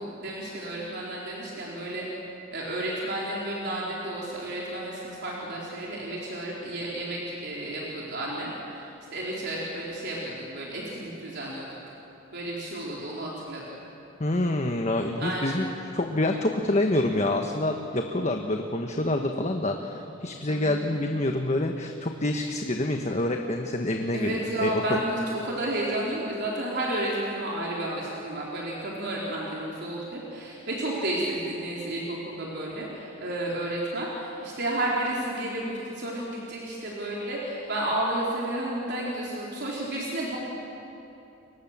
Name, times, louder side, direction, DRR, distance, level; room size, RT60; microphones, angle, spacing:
voice 1, 0.0-2.1 2.5-11.7 12.3-13.6 15.2-15.6 20.5-20.8 24.1-40.4, right 1 dB, 55° right, -4 dB, 4.1 m, -32 dB
voice 2, 14.2-15.7 15.9-25.0, left 1 dB, 35° left, 4 dB, 1.3 m, -27 dB
29.5 x 24.0 x 7.4 m, 2.9 s
head